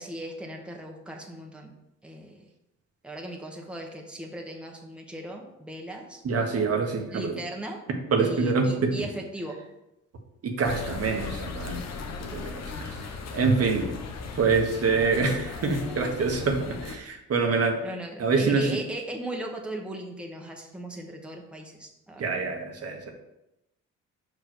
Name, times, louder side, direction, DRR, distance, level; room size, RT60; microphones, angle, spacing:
voice 1, 0.0-1.7 2.0-2.4 3.0-6.2 7.1-7.8 8.2-9.6 12.6-13.1 13.7-13.8 15.8-16.4 17.8-22.3, right 1 dB, 5° right, 0 dB, 1.3 m, -37 dB
voice 2, 6.2-7.3 8.1-9.1 10.4-11.8 12.2-13.1 13.3-13.9 14.3-17.8 18.2-18.7 22.2-23.1, right 4 dB, 55° right, 2 dB, 1.3 m, -26 dB
sound 1, 10.6-17.0, left 4 dB, 60° left, 1.1 m, -37 dB
5.5 x 4.9 x 6.2 m, 0.89 s
cardioid pair, 90°, 30 cm